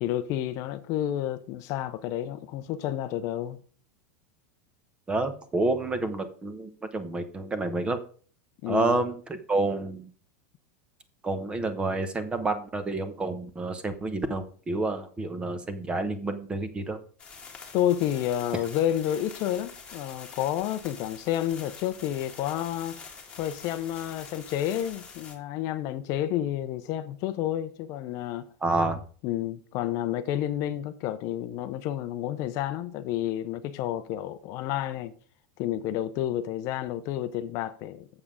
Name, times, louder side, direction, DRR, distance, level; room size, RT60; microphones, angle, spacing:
voice 1, 0.0-3.6 8.6-9.1 17.7-23.0 23.4-28.5 29.2-35.1 35.6-38.1, left 12 dB, 40° left, 0.6 m, -30 dB
voice 2, 5.1-8.0 8.7-10.0 11.2-17.0 28.6-29.0, right 2 dB, 10° right, 0.8 m, -29 dB
sound 1, 17.2-25.4, left 5 dB, 15° left, 1.6 m, -46 dB
7.3 x 7.3 x 4.9 m
supercardioid pair, 160°, 8 cm